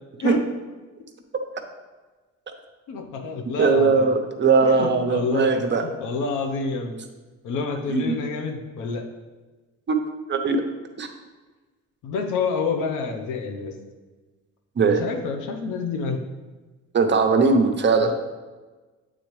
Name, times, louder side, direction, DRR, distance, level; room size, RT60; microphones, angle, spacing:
voice 1, 2.9-4.1 4.6-5.5 5.8-7.0 7.4-9.1 12.0-13.8 14.8-16.2 18.0-18.1, left 4 dB, 90° left, 4 dB, 0.8 m, -28 dB
voice 2, 3.6-5.8 7.9-8.2 9.9-10.0 10.3-10.6 11.0-11.1 14.8-15.0 16.9-18.1, right 4 dB, 40° right, 5 dB, 0.7 m, -19 dB
8.5 x 3.8 x 3.1 m, 1.3 s
cardioid pair, 90°, 30 cm